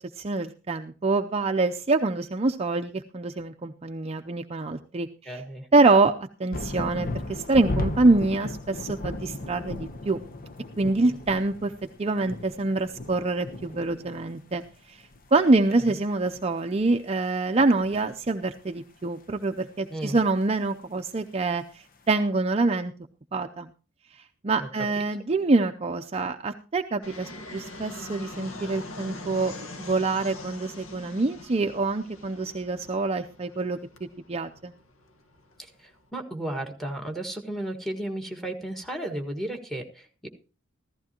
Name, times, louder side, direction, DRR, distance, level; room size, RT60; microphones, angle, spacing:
voice 1, 0.2-5.4 5.7-6.1 6.4-10.2 10.8-11.7 12.0-14.6 14.9-15.0 15.3-22.9 23.3-23.7 24.4-34.7, right 3 dB, 30° right, 6 dB, 0.6 m, -25 dB
voice 2, 5.2-5.7 11.0-11.1 19.9-20.2 24.6-24.7 35.6-40.3, right 1 dB, ahead, 4 dB, 1.7 m, -34 dB
sound 1, 6.5-14.3 14.6-14.7 15.0-15.9 16.8-16.9, left 2 dB, 45° left, 0.9 m, -35 dB
Fixed-wing aircraft airplane, 27.0-36.1, left 2 dB, 75° left, 1.4 m, -43 dB
15.0 x 14.5 x 2.9 m, 0.34 s
head